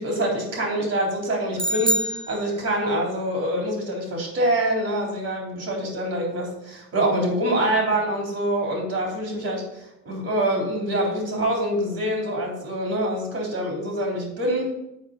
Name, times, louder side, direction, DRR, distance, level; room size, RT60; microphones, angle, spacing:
voice 1, 0.0-14.7, right 1 dB, 55° right, -1 dB, 3.7 m, -25 dB
sound 1, 1.6-3.0, right 1 dB, 15° right, 0.5 m, -26 dB
7.3 x 5.1 x 6.6 m, 0.82 s
cardioid pair, 90°, 30 cm